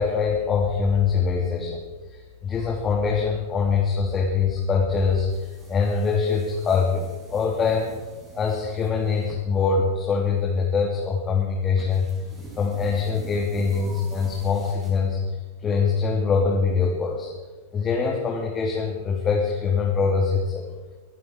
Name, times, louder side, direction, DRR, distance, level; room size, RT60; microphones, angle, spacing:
voice 1, 0.0-1.8 2.1-7.0 7.3-7.8 8.3-12.1 12.6-15.2 15.6-17.3 17.7-20.7, left 5 dB, 25° left, -2 dB, 3.0 m, -23 dB
sound 1, 4.9-15.5, right 2 dB, 20° right, 6.0 m, -45 dB
24.5 x 11.0 x 4.8 m, 1.3 s
figure-of-eight pair, 95°, 0 cm